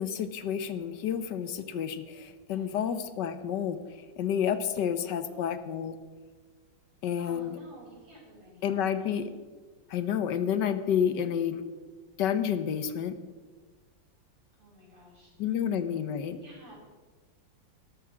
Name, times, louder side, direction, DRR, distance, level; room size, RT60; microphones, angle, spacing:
voice 1, 0.0-5.9 7.0-7.5 8.6-9.2 9.9-11.6 12.2-13.2 15.4-16.4, left 8 dB, 70° left, 11 dB, 1.4 m, -30 dB
voice 2, 5.0-5.4 7.2-9.2 14.6-15.5 16.4-16.7, equal, 80° right, -4 dB, 6.2 m, -53 dB
13.0 x 12.5 x 6.1 m, 1.4 s
omnidirectional pair, 2.0 m